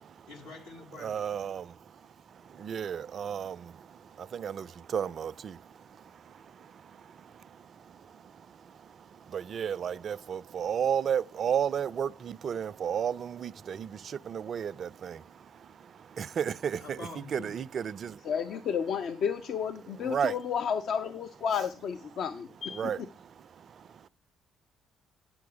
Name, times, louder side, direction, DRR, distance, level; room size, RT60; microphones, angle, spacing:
voice 1, 0.3-1.3 16.8-17.5, left 3 dB, 80° left, 2.0 m, -45 dB
voice 2, 1.0-17.0 17.3-18.3 20.0-20.4 22.7-24.1, right 8 dB, 45° right, 0.3 m, -34 dB
voice 3, 18.2-23.1, left 7 dB, 55° left, 0.5 m, -32 dB
9.4 x 5.9 x 5.1 m
figure-of-eight pair, 45°, 0 cm